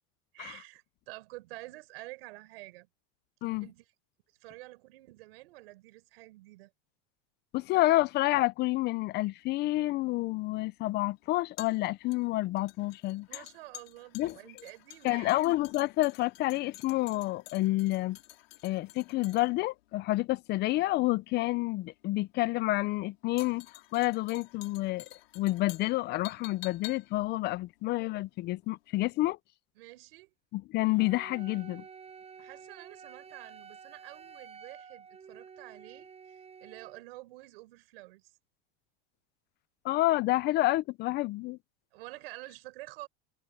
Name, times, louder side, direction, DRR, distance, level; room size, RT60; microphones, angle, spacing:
voice 1, 0.3-2.9 3.6-3.8 4.4-6.7 13.3-15.5 29.8-30.3 32.4-38.3 41.9-43.1, right 20 dB, 80° right, 4.4 m, -49 dB
voice 2, 7.5-13.4 14.1-14.4 15.0-18.2 18.6-23.7 23.9-25.1 25.4-29.4 30.5-31.8 39.8-41.6, left 18 dB, 35° left, 0.4 m, -29 dB
sound 1, 9.4-28.7 29.0-29.1, left 17 dB, 90° left, 4.2 m, -51 dB
Wind instrument woodwind instrument, 31.0-37.0, right 6 dB, 20° right, 7.9 m, -50 dB
supercardioid pair, 140°, 29 cm